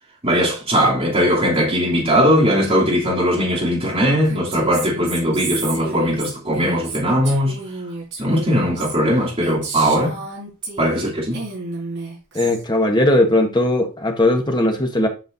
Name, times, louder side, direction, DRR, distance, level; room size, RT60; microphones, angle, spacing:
voice 1, 0.2-7.6 8.2-10.2 10.8-11.4, equal, 30° right, 3.0 m, -19 dB
Female speech woman speaking, 4.2-11.1 11.3-12.6, right 3 dB, 60° right, 4.1 m, -31 dB
voice 2, 12.3-15.1, left 1 dB, 20° left, 1.3 m, -18 dB
8.1 x 5.5 x 2.7 m
head